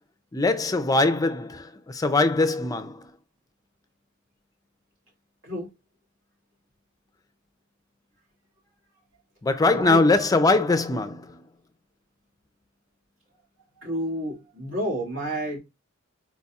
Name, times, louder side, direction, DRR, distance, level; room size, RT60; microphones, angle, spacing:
voice 1, 0.3-3.1 9.4-11.4, left 3 dB, 20° left, 0.4 m, -22 dB
voice 2, 13.8-15.6, equal, 80° right, 2.3 m, -30 dB
4.6 x 4.0 x 2.3 m
head